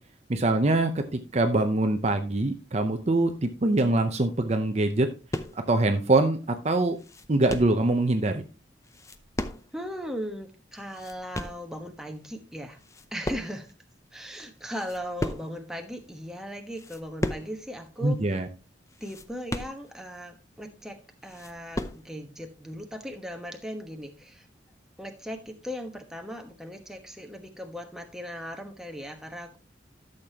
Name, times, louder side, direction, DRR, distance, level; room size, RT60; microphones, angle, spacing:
voice 1, 0.3-5.1 5.5-7.0 7.3-8.4 18.0-18.5, right 2 dB, 35° right, 6 dB, 0.6 m, -24 dB
sound 1, 5.3-5.7 6.3-6.4 6.7-7.8 8.8-9.9 10.2-10.3 10.7-11.7 12.3-12.5 12.8-13.8 14.1-14.2 14.6-15.7 16.2-16.3 16.7-17.6 17.9-18.0 18.3-18.4 18.9-20.2 20.6-20.7 21.0-22.1, left 1 dB, 15° left, 0.6 m, -35 dB
voice 2, 9.7-12.8 13.1-13.7 14.1-18.4 19.0-24.5 25.0-29.6, equal, 5° right, 4 dB, 1.1 m, -38 dB
12.0 x 6.6 x 2.9 m, 0.33 s
head